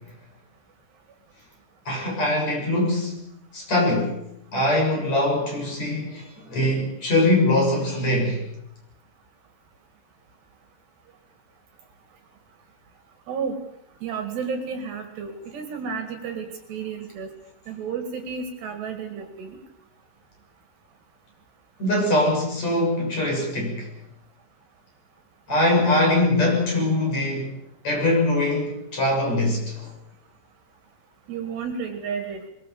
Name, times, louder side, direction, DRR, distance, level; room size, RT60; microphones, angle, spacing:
voice 1, 1.9-3.2 3.5-4.2 4.5-8.4 21.8-23.9 25.5-27.6 27.8-29.8, left 1 dB, 35° left, 0 dB, 7.9 m, -22 dB
voice 2, 14.0-17.3 17.7-19.6 31.3-32.4, right 6 dB, 65° right, 6 dB, 4.0 m, -32 dB
23.0 x 22.5 x 7.1 m, 0.79 s
omnidirectional pair, 5.5 m